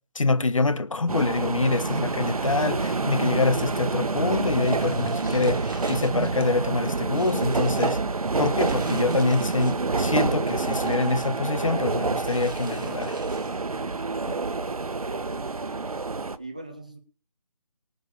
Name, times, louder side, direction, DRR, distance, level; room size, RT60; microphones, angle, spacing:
voice 1, 0.1-8.0 8.4-13.2, left 3 dB, 60° left, 1.4 m, -25 dB
sound 1, 1.1-6.7, left 3 dB, 75° left, 5.1 m, -43 dB
sound 2, 1.1-16.4, right 3 dB, 75° right, 1.3 m, -27 dB
sound 3, 4.6-6.5 6.9-8.0 8.6-9.9 10.3-11.3 12.3-13.8, right 3 dB, 35° right, 1.6 m, -46 dB
voice 2, 14.7-16.0 16.4-17.0, right 2 dB, 10° right, 0.7 m, -42 dB
18.5 x 6.9 x 6.8 m
figure-of-eight pair, 180°, 19 cm